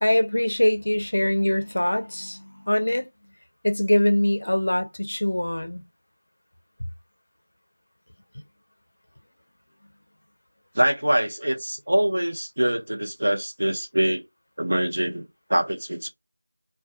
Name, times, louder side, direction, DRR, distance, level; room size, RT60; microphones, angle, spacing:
voice 1, 0.0-3.1 3.6-5.8, left 1 dB, 55° left, 0.4 m, -23 dB
voice 2, 10.7-14.2 14.6-15.2 15.5-16.1, right 1 dB, 55° right, 0.7 m, -24 dB
2.2 x 2.1 x 2.6 m
figure-of-eight pair, 180°, 0 cm